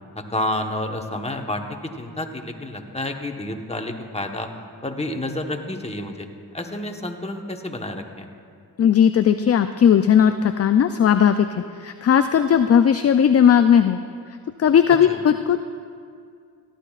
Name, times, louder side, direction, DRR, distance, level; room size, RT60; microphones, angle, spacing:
voice 1, 0.1-4.5 4.8-6.3 6.5-8.3 15.1-15.2, left 1 dB, 15° left, 3 dB, 1.3 m, -29 dB
voice 2, 8.8-14.0 14.6-15.6, left 8 dB, 35° left, 9 dB, 0.4 m, -17 dB
17.5 x 12.0 x 2.5 m, 2.3 s
cardioid pair, 50°, 43 cm